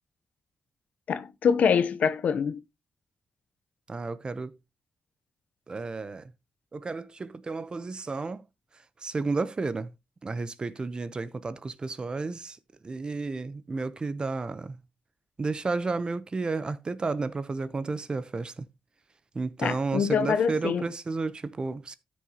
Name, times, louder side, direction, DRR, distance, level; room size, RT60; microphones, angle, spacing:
voice 1, 1.1-2.6 19.6-20.9, left 6 dB, 70° left, 0.8 m, -25 dB
voice 2, 3.9-4.5 5.7-6.3 6.7-8.4 9.0-9.9 10.2-12.6 12.8-14.8 15.4-18.7 19.3-21.9, right 3 dB, 35° right, 0.8 m, -32 dB
13.5 x 6.3 x 2.9 m
cardioid pair, 85°, 3 cm